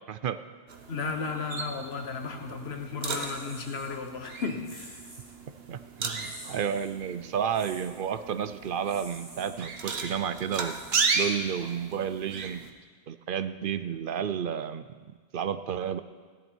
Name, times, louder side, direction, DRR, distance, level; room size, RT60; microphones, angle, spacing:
sound 1, 0.7-12.7, right 4 dB, 80° right, 1.2 m, -35 dB
voice 1, 0.9-5.0, left 4 dB, 90° left, 6 dB, 1.3 m, -34 dB
sound 2, 3.0-3.9 4.6-5.3 6.1-6.9 7.5-8.0 8.8-9.5 10.4-11.6, right 1 dB, 25° right, 3.5 m, -48 dB
voice 2, 5.7-10.8 11.1-12.6 13.1-14.8 15.3-16.0, right 8 dB, 60° right, 12 dB, 0.7 m, -31 dB
16.0 x 11.0 x 4.5 m, 1.5 s
omnidirectional pair, 1.0 m